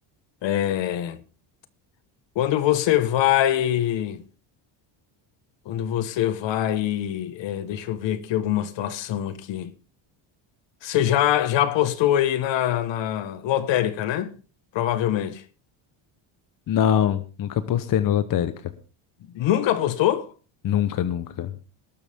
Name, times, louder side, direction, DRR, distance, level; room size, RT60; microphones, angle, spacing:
voice 1, 0.4-1.2 2.3-4.2 5.6-9.7 10.8-14.3 14.7-15.4 19.3-20.3, left 12 dB, 60° left, 1.5 m, -23 dB
voice 2, 16.7-18.5 20.6-21.5, left 9 dB, 40° left, 1.0 m, -23 dB
19.5 x 12.5 x 3.6 m
cardioid pair, 165°, 50 cm